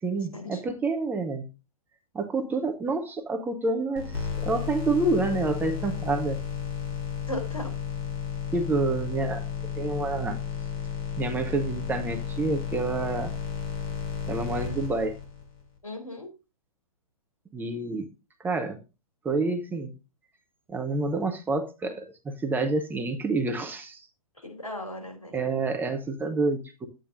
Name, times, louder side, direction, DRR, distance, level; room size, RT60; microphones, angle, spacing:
voice 1, 0.0-1.4 2.1-6.4 8.5-9.4 9.8-10.4 11.2-13.3 14.3-15.2 17.5-18.1 18.4-18.8 19.2-19.9 20.7-24.1 25.3-26.9, right 3 dB, 10° right, 0.9 m, -28 dB
sound 1, 4.0-15.6, left 7 dB, 40° left, 3.1 m, -33 dB
voice 2, 7.3-7.8 15.8-16.3 24.4-25.4, left 1 dB, 75° left, 3.5 m, -37 dB
11.5 x 9.0 x 2.6 m
figure-of-eight pair, 110°, 18 cm